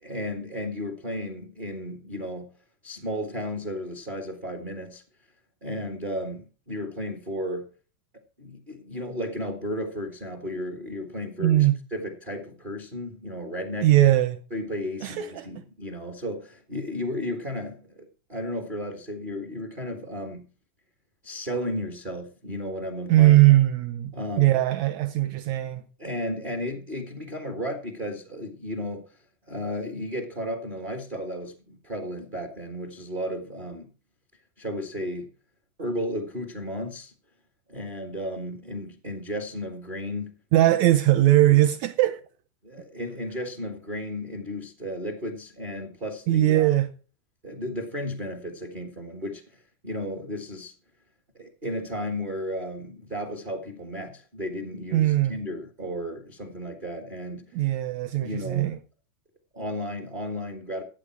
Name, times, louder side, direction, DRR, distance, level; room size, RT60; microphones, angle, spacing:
voice 1, 0.0-2.5 2.8-5.0 5.6-7.7 8.4-13.9 14.5-20.4 21.2-23.3 24.1-24.5 26.0-29.0 29.5-33.9 34.6-35.3 35.8-37.1 37.7-40.4 42.6-46.7 47.4-50.7 51.3-57.4 58.2-58.8 59.5-60.8, equal, 35° right, 0.8 m, -34 dB
voice 2, 11.4-11.8 13.8-14.4 15.0-15.5 23.1-25.8 40.5-42.2 46.3-46.9 54.9-55.3 57.5-58.8, right 14 dB, 75° right, 1.7 m, -20 dB
14.0 x 8.7 x 4.7 m
omnidirectional pair, 3.8 m